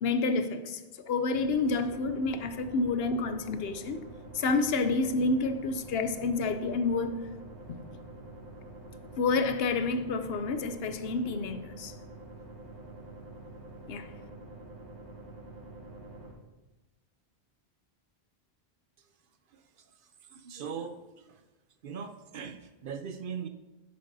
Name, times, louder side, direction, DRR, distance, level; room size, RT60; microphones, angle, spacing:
voice 1, 0.0-4.1 4.3-7.2 7.7-7.8 9.2-11.9 13.9-14.1, left 3 dB, 70° left, 0.8 m, -29 dB
sound 1, 1.3-16.3, right 2 dB, 85° right, 3.2 m, -47 dB
voice 2, 20.3-21.4 21.8-23.5, right 6 dB, 60° right, 0.7 m, -39 dB
10.5 x 7.9 x 2.7 m
omnidirectional pair, 1.1 m